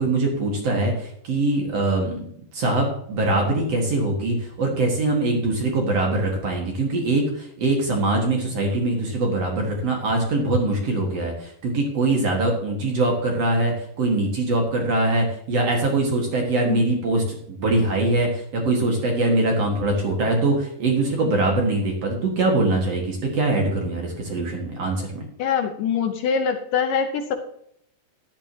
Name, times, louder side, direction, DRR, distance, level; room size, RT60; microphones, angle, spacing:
voice 1, 0.0-2.2 2.5-25.2, right 2 dB, 50° right, 1 dB, 2.6 m, -23 dB
voice 2, 25.4-27.4, left 6 dB, 75° left, 6 dB, 2.3 m, -24 dB
13.0 x 10.5 x 2.9 m, 0.69 s
omnidirectional pair, 4.3 m